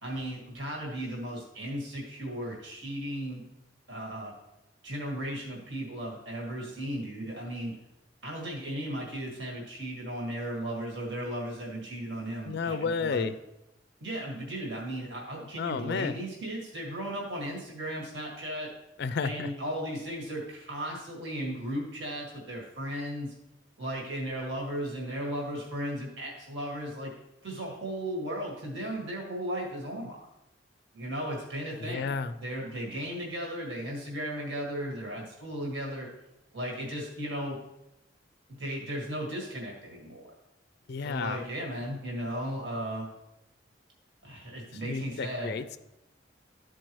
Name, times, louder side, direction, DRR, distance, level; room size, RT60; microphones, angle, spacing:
voice 1, 0.0-3.4 3.9-4.3 4.8-7.8 8.2-13.3 14.0-18.7 19.2-23.3 23.8-27.1 27.4-30.2 30.9-36.1 36.5-37.6 38.5-40.3 41.0-43.1 44.2-45.6, right 1 dB, 70° right, -2 dB, 1.8 m, -36 dB
voice 2, 12.5-13.3 15.6-16.2 19.0-19.5 31.8-32.3 40.9-41.4 44.8-45.8, left 5 dB, 60° left, 13 dB, 0.4 m, -31 dB
12.0 x 4.6 x 3.0 m, 0.91 s
head